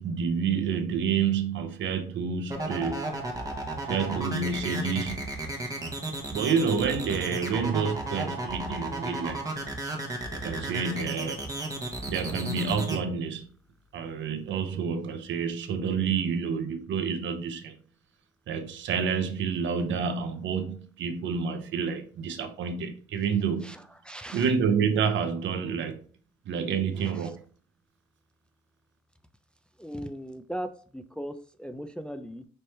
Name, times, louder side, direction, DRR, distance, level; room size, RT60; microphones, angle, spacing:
voice 1, 0.0-3.1 3.9-5.3 6.3-9.4 10.3-11.5 12.1-13.5 13.9-17.8 18.5-23.7 24.3-26.0 26.5-27.4, right 6 dB, 70° right, 0.7 m, -29 dB
sound 1, 2.5-13.0, right 2 dB, 15° right, 1.0 m, -33 dB
voice 2, 23.6-24.5 27.0-27.3 29.8-32.5, equal, 5° left, 0.3 m, -39 dB
4.3 x 3.2 x 3.2 m
cardioid pair, 90°, 20 cm